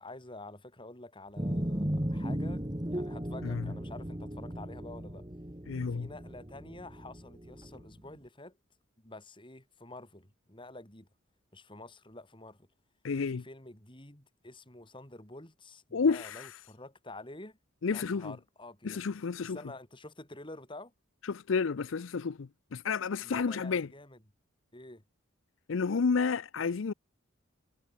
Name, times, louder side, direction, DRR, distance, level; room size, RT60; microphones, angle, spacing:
voice 1, 0.0-2.6 2.9-5.3 5.9-8.6 9.0-11.1 11.5-12.7 13.3-17.6 17.8-19.0 19.4-20.9 23.2-24.2 24.7-25.0, left 2 dB, 25° left, 4.7 m, -48 dB
sound 1, 1.4-7.9, equal, 20° right, 2.0 m, -36 dB
voice 2, 5.7-6.1 13.0-13.4 15.9-16.5 17.8-18.3 18.8-19.6 21.2-23.9 25.7-26.9, left 5 dB, 70° left, 0.5 m, -31 dB
head